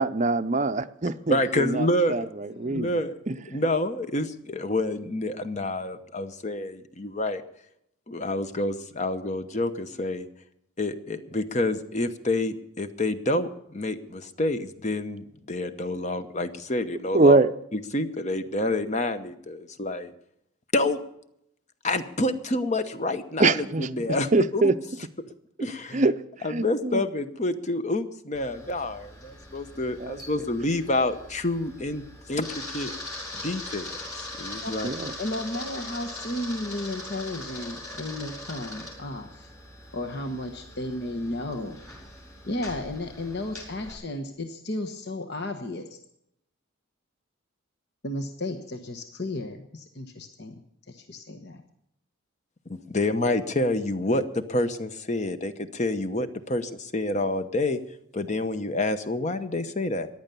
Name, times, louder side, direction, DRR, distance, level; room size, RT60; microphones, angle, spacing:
voice 1, 0.0-2.9 3.3-3.4 17.1-17.5 23.4-23.9 24.3-24.7 25.9-26.1 26.5-27.1 30.0-30.2 34.8-35.1, right 3 dB, 35° right, 0.6 m, -23 dB
voice 2, 1.3-2.3 2.7-3.1 3.5-7.4 8.1-10.3 10.8-17.4 17.7-20.1 20.7-21.0 21.8-24.6 25.6-26.0 26.4-32.9 33.3-34.9 52.7-57.8 58.1-60.1, left 2 dB, 35° left, 0.9 m, -28 dB
Camera, 28.3-43.9, left 1 dB, 15° left, 4.7 m, -41 dB
voice 3, 35.2-39.5 39.9-41.8 42.4-46.0 48.0-50.5 50.9-51.6, left 1 dB, 50° left, 1.2 m, -34 dB
15.0 x 10.5 x 6.8 m
head